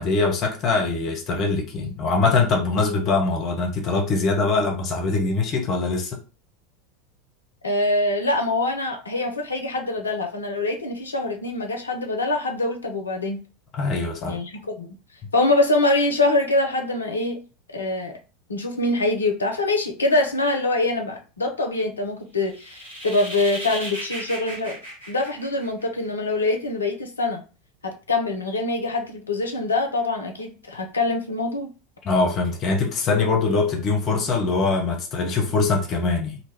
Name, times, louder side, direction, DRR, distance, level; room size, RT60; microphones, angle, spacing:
voice 1, 0.0-6.2 13.7-14.4 32.0-36.4, left 3 dB, 40° left, 0.8 m, -23 dB
voice 2, 7.6-13.4 14.3-14.9 15.3-17.4 17.7-18.2 18.5-24.8 25.1-27.4 27.8-31.7, left 2 dB, 80° left, 0.5 m, -24 dB
sound 1, 22.4-26.0, equal, 80° right, 1.2 m, -35 dB
2.4 x 2.2 x 3.3 m
figure-of-eight pair, 80°, 0 cm